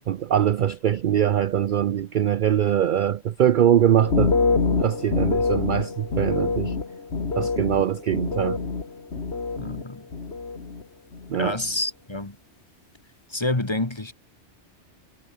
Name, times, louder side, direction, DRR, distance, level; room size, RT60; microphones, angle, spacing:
voice 1, 0.1-4.3 4.8-6.8 7.4-8.6 11.3-11.5, right 10 dB, 55° right, 0.6 m, -22 dB
sound 1, 4.0-9.8 10.1-10.8 11.1-11.6, left 4 dB, 65° left, 2.4 m, -26 dB
voice 2, 9.6-10.1 11.3-12.4 13.3-14.1, left 2 dB, 25° left, 1.9 m, -28 dB
omnidirectional pair, 1.2 m